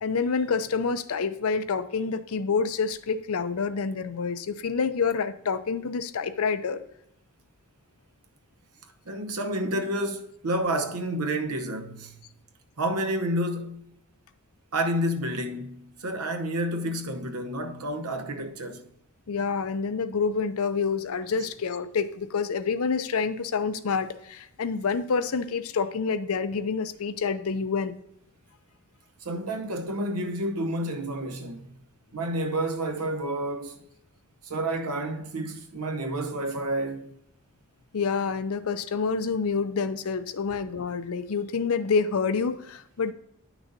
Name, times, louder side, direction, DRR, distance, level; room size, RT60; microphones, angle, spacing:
voice 1, 0.0-6.8 19.3-27.9 37.9-43.1, left 5 dB, 70° left, 0.5 m, -27 dB
voice 2, 9.1-12.1 12.8-13.9 14.7-18.8 29.2-31.8 32.1-33.8 34.4-37.1, right 1 dB, 80° right, 0.8 m, -30 dB
10.0 x 6.0 x 2.6 m
head